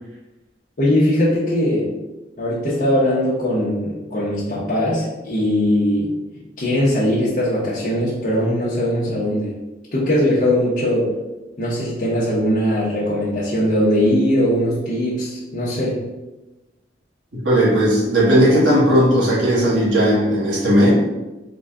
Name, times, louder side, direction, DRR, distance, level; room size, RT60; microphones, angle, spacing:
voice 1, 0.8-1.9 2.4-6.1 6.6-9.5 9.9-11.1 11.6-16.0, left 1 dB, 50° left, -9 dB, 0.8 m, -20 dB
voice 2, 17.3-20.9, equal, 90° right, -6 dB, 1.3 m, -16 dB
3.8 x 2.2 x 3.6 m, 1.1 s
head